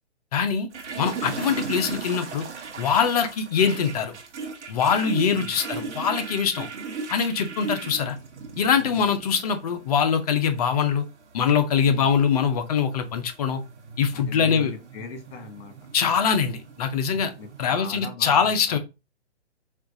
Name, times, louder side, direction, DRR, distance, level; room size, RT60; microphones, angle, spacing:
voice 1, 0.3-0.7 1.0-2.5 2.8-4.1 4.7-6.7 7.1-8.2 8.6-11.1 11.3-13.6 14.0-14.7 15.9-17.3 17.6-18.8, left 6 dB, 35° left, 0.5 m, -23 dB
sound 1, 0.7-17.8, right 4 dB, 80° right, 1.1 m, -37 dB
voice 2, 5.3-5.6 8.8-9.0 11.9-12.1 14.1-15.9 17.1-18.8, left 4 dB, 60° left, 1.6 m, -40 dB
4.3 x 2.4 x 2.6 m
hypercardioid pair, 150°, 35 cm